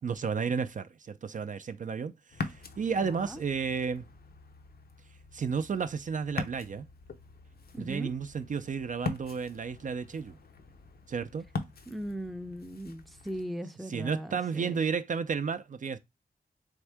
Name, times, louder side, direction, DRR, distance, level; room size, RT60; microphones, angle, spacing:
voice 1, 0.0-4.0 5.3-6.9 7.8-10.4 11.1-11.4 13.9-16.0, right 6 dB, 55° right, 0.4 m, -32 dB
Ocean, 2.3-13.4, left 4 dB, 75° left, 0.7 m, -42 dB
voice 2, 2.9-3.4 7.7-8.1 11.9-14.9, equal, ahead, 0.5 m, -39 dB
3.6 x 3.6 x 3.3 m
wide cardioid pair, 100°, 16 cm